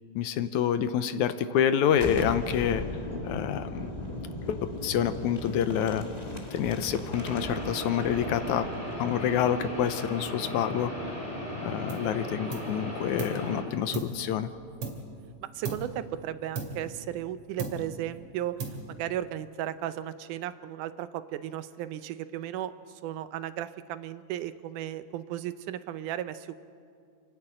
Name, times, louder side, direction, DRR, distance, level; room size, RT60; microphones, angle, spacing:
voice 1, 0.2-2.8 3.2-3.9 4.5-6.1 6.5-8.7 9.0-11.2 11.6-14.5, left 9 dB, 75° left, 11 dB, 2.1 m, -27 dB
Boom, 1.9-11.5, left 2 dB, 20° left, 1.2 m, -38 dB
sound 1, 7.1-13.6, left 1 dB, 10° right, 5.2 m, -37 dB
sound 2, 11.9-12.2 12.5-13.5 13.9-15.3 15.6-16.1 16.5-17.3 17.6-18.1 18.6-19.1, right 4 dB, 50° right, 3.3 m, -38 dB
voice 2, 15.4-18.6 18.9-26.5, right 12 dB, 85° right, 12 dB, 2.2 m, -35 dB
28.5 x 11.0 x 8.8 m, 2.3 s
omnidirectional pair, 3.6 m